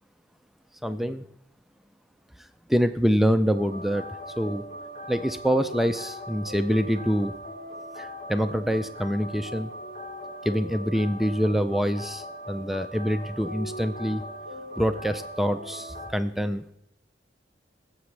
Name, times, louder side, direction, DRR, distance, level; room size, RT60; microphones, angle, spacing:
voice 1, 0.8-1.2 2.7-4.0 4.4-4.6 5.1-7.3 8.0-9.7 10.4-14.3 14.8-16.6, equal, ahead, 9 dB, 0.3 m, -25 dB
sound 1, 3.5-16.1, equal, 50° left, 3.3 m, -40 dB
18.0 x 7.9 x 3.3 m, 0.75 s
head